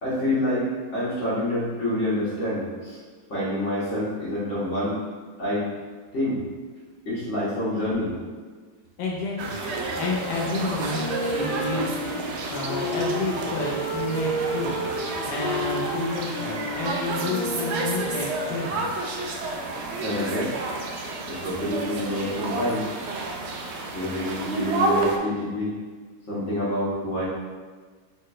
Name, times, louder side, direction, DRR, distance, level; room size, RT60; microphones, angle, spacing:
voice 1, 0.0-3.0 3.3-5.0 5.4-5.7 6.1-6.4 7.0-8.1 20.0-20.5 21.3-22.9 23.9-25.7 26.3-27.2, left 1 dB, 45° left, -8 dB, 1.7 m, -27 dB
voice 2, 9.0-14.8 15.2-18.9, left 3 dB, 90° left, -3 dB, 1.5 m, -30 dB
sound 1, 9.4-25.2, right 2 dB, 80° right, 0.6 m, -30 dB
Wind instrument woodwind instrument, 10.9-18.6, equal, 65° left, 1.7 m, -32 dB
4.3 x 3.5 x 3.2 m, 1.5 s
omnidirectional pair, 1.8 m